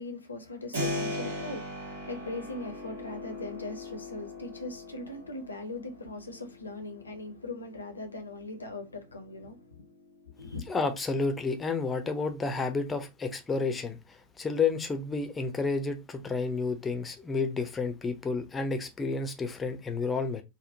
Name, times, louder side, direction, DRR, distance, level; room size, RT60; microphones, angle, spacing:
voice 1, 0.0-9.8 10.3-10.6, left 2 dB, 75° left, 0.6 m, -40 dB
Keyboard (musical), 0.7-11.4, left 1 dB, 65° right, 1.1 m, -40 dB
voice 2, 10.7-14.0 14.4-20.4, left 4 dB, 15° left, 0.6 m, -30 dB
3.5 x 2.1 x 2.6 m
figure-of-eight pair, 90°, 0 cm